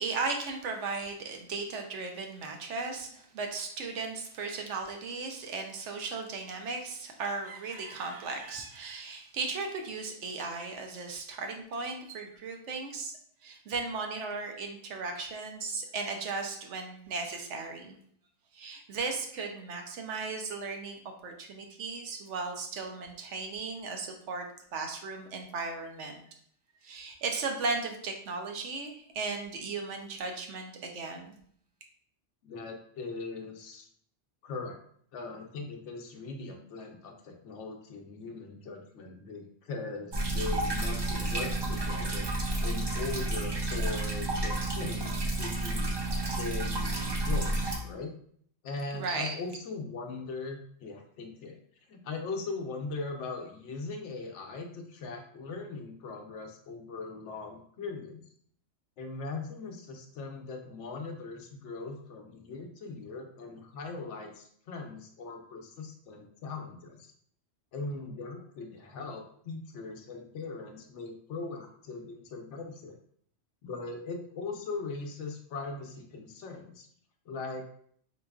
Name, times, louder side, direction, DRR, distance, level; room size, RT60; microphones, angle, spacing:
voice 1, 0.0-13.1 13.4-18.0 18.5-24.5 24.7-26.2 26.8-31.3 48.9-49.4, right 4 dB, 75° right, 3 dB, 0.9 m, -36 dB
voice 2, 32.4-33.9 34.4-34.8 35.1-42.3 42.6-45.9 46.4-48.1 48.6-51.6 51.9-58.2 59.0-67.1 67.7-72.9 73.6-76.9 77.3-77.7, left 3 dB, 75° left, 3 dB, 0.9 m, -40 dB
sound 1, 40.1-47.8, right 2 dB, 45° right, 0.3 m, -31 dB
3.9 x 2.9 x 2.3 m, 0.63 s
omnidirectional pair, 1.2 m